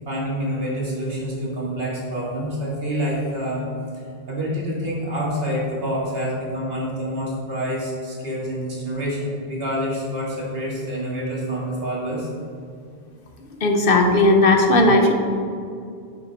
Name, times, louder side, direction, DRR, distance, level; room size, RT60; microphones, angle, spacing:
voice 1, 0.1-3.7 4.3-12.3, equal, 70° right, -5 dB, 2.1 m, -27 dB
voice 2, 13.6-15.1, left 2 dB, 65° left, 3 dB, 1.0 m, -16 dB
8.7 x 5.3 x 4.0 m, 2.4 s
omnidirectional pair, 1.0 m